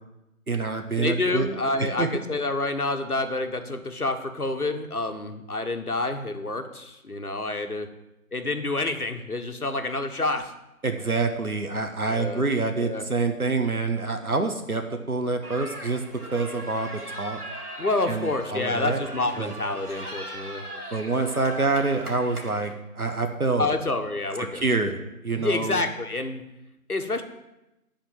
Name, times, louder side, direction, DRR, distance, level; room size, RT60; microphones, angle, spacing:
voice 1, 0.5-1.5 1.8-2.2 10.8-17.4 18.1-19.0 19.4-19.5 20.9-23.7 24.4-25.8, right 3 dB, 75° right, 5 dB, 1.5 m, -27 dB
voice 2, 1.0-7.9 8.3-10.5 12.1-12.5 12.8-13.0 17.8-20.6 23.6-24.6 25.4-26.4 26.9-27.2, left 2 dB, 75° left, 6 dB, 1.4 m, -28 dB
sound 1, 15.4-22.7, right 1 dB, 90° right, 2.3 m, -39 dB
12.0 x 4.4 x 7.5 m, 0.92 s
figure-of-eight pair, 170°, 44 cm